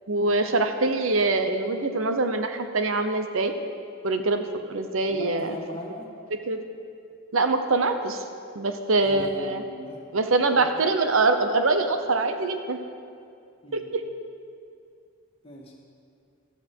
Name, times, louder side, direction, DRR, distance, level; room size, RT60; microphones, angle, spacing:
voice 1, 0.1-3.5 4.0-5.6 6.3-6.6 7.3-8.2 8.5-9.6 10.1-12.8 13.7-14.0, right 3 dB, 75° right, 7 dB, 0.9 m, -24 dB
voice 2, 5.1-6.1 9.0-10.0 13.6-13.9 15.4-15.7, left 1 dB, 30° left, -2 dB, 2.2 m, -39 dB
14.0 x 14.0 x 4.6 m, 2.4 s
head